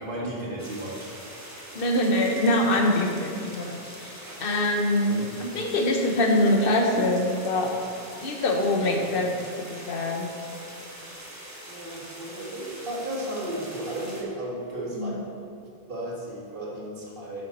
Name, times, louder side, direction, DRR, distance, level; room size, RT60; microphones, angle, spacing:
voice 1, 0.0-1.1 4.2-4.4 11.7-15.3 15.6-17.4, right 1 dB, 55° right, -5 dB, 1.9 m, -34 dB
sound 1, 0.6-14.2, right 1 dB, 15° right, 1.2 m, -43 dB
voice 2, 1.7-3.7 4.0-7.8 8.2-10.3 14.9-15.2, left 1 dB, 65° left, 2 dB, 1.1 m, -24 dB
8.3 x 6.6 x 4.2 m, 2.6 s
omnidirectional pair, 1.0 m